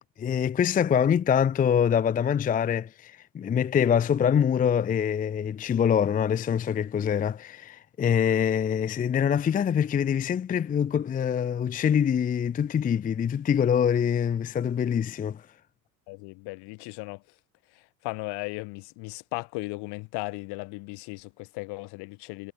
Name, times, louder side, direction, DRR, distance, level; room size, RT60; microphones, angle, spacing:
voice 1, 0.2-15.4, left 8 dB, 15° left, 0.6 m, -24 dB
voice 2, 16.1-17.2 18.0-22.5, left 27 dB, 50° left, 1.6 m, -36 dB
figure-of-eight pair, 70°, 49 cm